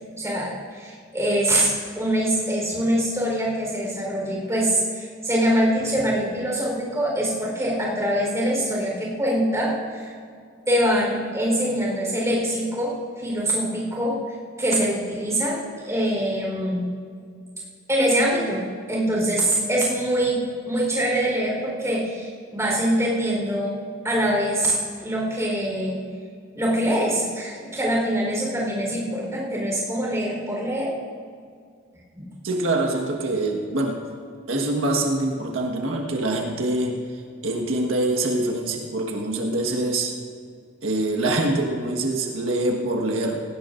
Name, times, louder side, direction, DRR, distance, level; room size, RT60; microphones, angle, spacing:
voice 1, 0.2-10.1 10.7-14.2 14.6-16.8 17.9-24.7 25.0-26.0 26.5-30.9 32.1-32.3, right 1 dB, 15° right, -3 dB, 4.1 m, -24 dB
voice 2, 32.4-34.0 34.5-37.0 37.4-40.1 40.8-43.4, right 2 dB, 85° right, 1 dB, 1.5 m, -24 dB
18.5 x 17.5 x 2.6 m, 2.2 s
head